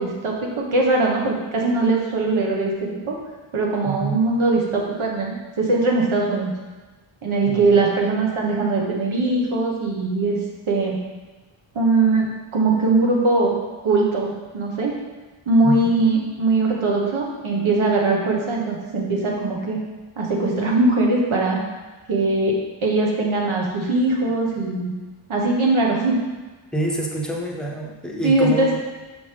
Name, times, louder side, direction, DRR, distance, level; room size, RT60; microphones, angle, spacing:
voice 1, 0.0-3.2 3.5-6.5 7.2-10.4 10.7-11.0 11.7-12.3 12.5-13.6 13.8-14.9 15.5-19.8 20.2-21.6 22.1-24.9 25.3-26.2 28.2-28.8, right 2 dB, 75° right, -1 dB, 1.4 m, -21 dB
voice 2, 3.8-4.2 7.5-7.8 15.6-15.9 26.7-28.8, right 2 dB, ahead, -3 dB, 0.7 m, -27 dB
6.0 x 5.1 x 3.4 m, 1.3 s
wide cardioid pair, 160°, 48 cm